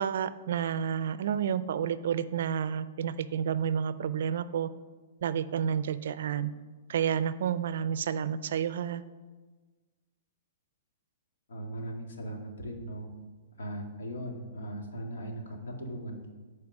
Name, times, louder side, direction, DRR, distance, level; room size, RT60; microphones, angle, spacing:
voice 1, 0.0-4.7 5.2-6.5 6.9-9.0, right 8 dB, 60° right, 15 dB, 0.4 m, -30 dB
voice 2, 11.5-13.1 13.6-16.3, right 1 dB, 90° left, 2 dB, 1.9 m, -38 dB
9.6 x 4.6 x 6.0 m, 1.3 s
hypercardioid pair, 170°, 0 cm